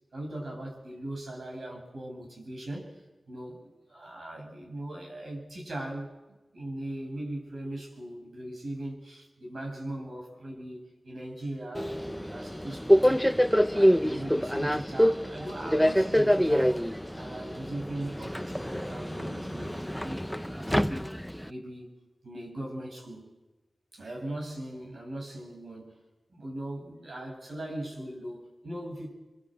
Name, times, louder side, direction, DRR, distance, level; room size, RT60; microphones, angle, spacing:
voice 1, 0.1-13.2 13.6-16.8 17.1-21.2 21.5-21.9 22.2-23.3 23.9-26.0 26.3-29.1, right 1 dB, 75° right, 1 dB, 7.9 m, -39 dB
Subway metro underground, 11.8-21.5, equal, ahead, 0.9 m, -26 dB
24.5 x 24.5 x 7.9 m, 1.1 s
cardioid pair, 50°, 0 cm